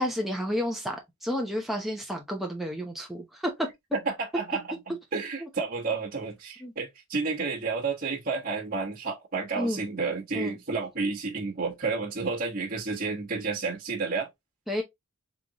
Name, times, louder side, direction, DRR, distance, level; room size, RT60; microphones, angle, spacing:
voice 1, 0.0-3.7 5.4-5.5 6.6-6.7 9.5-9.8 10.3-10.6 14.7-14.8, equal, ahead, 0.8 m, -31 dB
voice 2, 3.9-14.3, right 4 dB, 40° right, 1.3 m, -31 dB
3.8 x 3.5 x 2.9 m
head